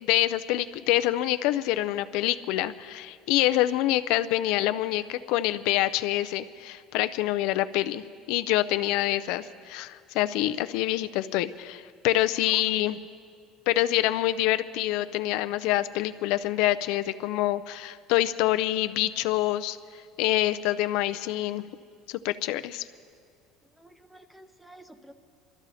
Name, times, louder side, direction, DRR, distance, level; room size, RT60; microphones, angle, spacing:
voice 1, 0.0-8.0 8.3-13.0 13.7-19.8 20.2-21.7 22.1-22.9, left 15 dB, 70° left, 12 dB, 0.4 m, -26 dB
voice 2, 23.6-25.1, right 1 dB, 5° right, 9 dB, 0.6 m, -50 dB
23.0 x 13.5 x 4.1 m, 2.2 s
cardioid pair, 160°, 0 cm